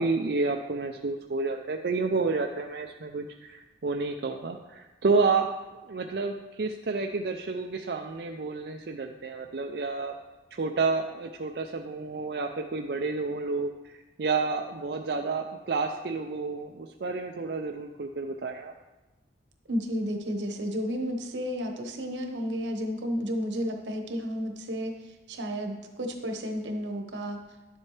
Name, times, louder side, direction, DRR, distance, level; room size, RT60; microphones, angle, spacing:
voice 1, 0.0-5.5 5.9-10.1 10.5-18.7, right 4 dB, 65° right, 3 dB, 0.5 m, -30 dB
voice 2, 19.7-24.9 25.3-27.4, equal, 90° right, 4 dB, 1.1 m, -32 dB
11.0 x 7.3 x 3.2 m, 1.1 s
head